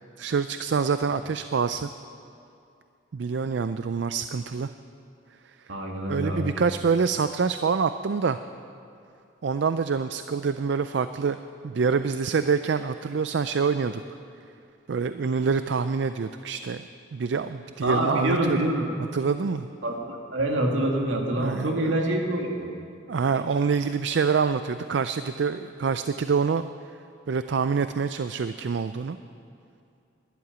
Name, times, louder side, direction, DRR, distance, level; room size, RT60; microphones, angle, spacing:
voice 1, 0.2-1.9 3.1-4.7 6.1-8.4 9.4-11.4 11.6-14.0 14.9-16.8 17.1-18.7 19.1-19.7 21.4-21.9 23.1-26.7 27.3-29.2, right 5 dB, 60° right, 11 dB, 0.4 m, -26 dB
voice 2, 5.7-6.5 17.8-18.9 19.8-22.7, right 1 dB, 80° right, 0 dB, 2.3 m, -26 dB
12.5 x 11.5 x 9.3 m, 2.5 s
head